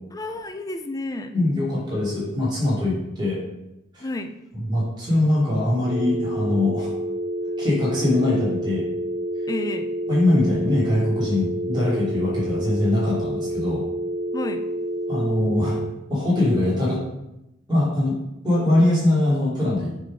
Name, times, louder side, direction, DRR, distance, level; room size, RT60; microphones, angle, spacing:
voice 1, 0.1-1.3 4.0-4.4 9.5-9.9 14.3-14.7, left 2 dB, 20° left, 8 dB, 0.5 m, -31 dB
voice 2, 1.3-3.4 3.9-4.1 4.7-6.9 7.6-8.9 10.1-13.8 15.1-15.8 16.1-17.0 17.7-18.2 18.4-20.0, left 1 dB, 25° right, -8 dB, 2.6 m, -22 dB
sound 1, 5.9-15.9, right 1 dB, 60° right, 0.9 m, -28 dB
7.5 x 3.9 x 5.1 m, 0.90 s
head